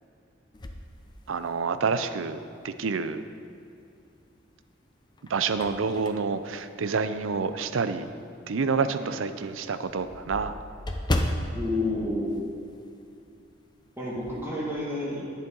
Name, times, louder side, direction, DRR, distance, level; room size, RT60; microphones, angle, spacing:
sound 1, 0.5-1.9 2.4-2.5 4.0-4.5 5.0-7.6 8.1-8.2 8.6-8.7 8.9-9.0 9.3-13.1 13.3-13.6 13.9-14.5, left 1 dB, 20° left, 0.5 m, -34 dB
voice 1, 1.3-2.4 2.6-3.2 5.3-8.1 8.5-10.5, right 5 dB, 90° right, 11 dB, 0.5 m, -28 dB
voice 2, 11.6-12.4 14.0-15.2, left 1 dB, 10° right, -6 dB, 2.0 m, -30 dB
10.5 x 8.6 x 3.9 m, 2.5 s
head